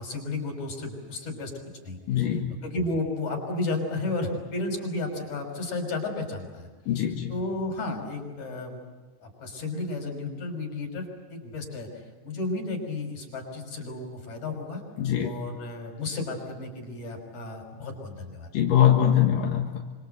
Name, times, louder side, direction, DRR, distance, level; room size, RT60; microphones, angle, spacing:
voice 1, 0.0-1.5 1.8-6.7 7.3-8.8 9.2-14.8 15.2-18.5, left 2 dB, 60° left, 3 dB, 7.1 m, -33 dB
voice 2, 2.1-2.5 6.9-7.3 15.0-15.3 18.5-19.8, left 10 dB, 85° left, 1 dB, 3.2 m, -22 dB
27.0 x 26.0 x 8.1 m, 1.4 s
omnidirectional pair, 3.8 m